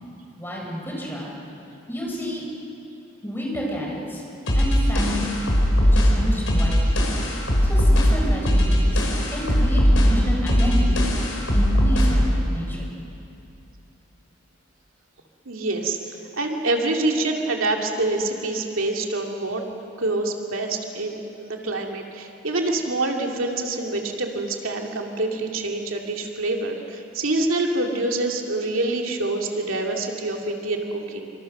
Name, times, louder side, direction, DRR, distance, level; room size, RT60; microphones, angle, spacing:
voice 1, 0.4-1.3 1.9-2.5 3.2-4.2 4.6-5.3 5.9-6.8 7.6-11.1 11.5-13.0, left 1 dB, 10° left, -2 dB, 5.4 m, -30 dB
sound 1, 4.5-12.3, equal, 70° left, 5.1 m, -19 dB
voice 2, 15.5-31.3, right 2 dB, 75° right, 1 dB, 2.4 m, -26 dB
27.0 x 25.5 x 6.6 m, 2.7 s
head